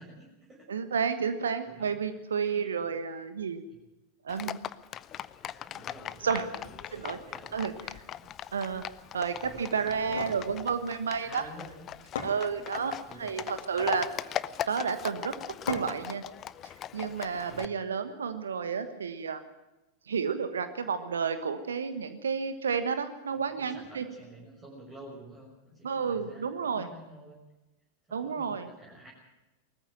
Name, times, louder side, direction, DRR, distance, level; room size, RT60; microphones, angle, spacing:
voice 1, 0.0-0.7 1.6-1.9 2.5-2.8 5.6-7.6 8.1-8.3 9.3-9.9 10.3-10.9 11.2-13.4 17.4-17.7 23.3-27.4 28.1-29.1, right 1 dB, 20° right, -4 dB, 6.3 m, -51 dB
voice 2, 0.7-3.6 4.2-4.6 6.2-6.5 6.9-7.2 7.5-8.0 8.5-8.8 9.1-11.4 12.2-12.9 13.2-14.1 14.7-15.3 15.7-16.2 16.6-19.4 20.1-24.0 25.8-26.9 28.1-28.7, right 6 dB, 70° right, 11 dB, 1.3 m, -31 dB
Livestock farm animals working animals, 4.3-17.7, left 11 dB, 30° left, 0.6 m, -40 dB
sound 1, 9.9-10.4 11.7-11.8 12.2-12.9 13.6-14.1 15.7-16.1, left 6 dB, 60° left, 2.9 m, -37 dB
20.0 x 14.5 x 9.0 m, 1.0 s
figure-of-eight pair, 90°, 0 cm